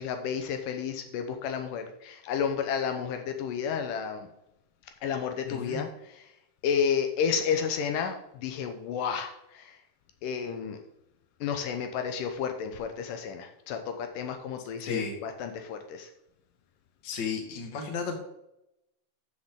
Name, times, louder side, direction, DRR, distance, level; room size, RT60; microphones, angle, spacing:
voice 1, 0.0-4.3 5.0-6.3 6.6-9.8 10.2-10.8 11.4-16.1, left 7 dB, 80° left, 6 dB, 2.4 m, -31 dB
voice 2, 5.5-5.8 14.8-15.1 17.0-18.1, left 5 dB, 40° left, 3 dB, 1.9 m, -33 dB
13.0 x 6.5 x 3.7 m, 0.84 s
omnidirectional pair, 3.9 m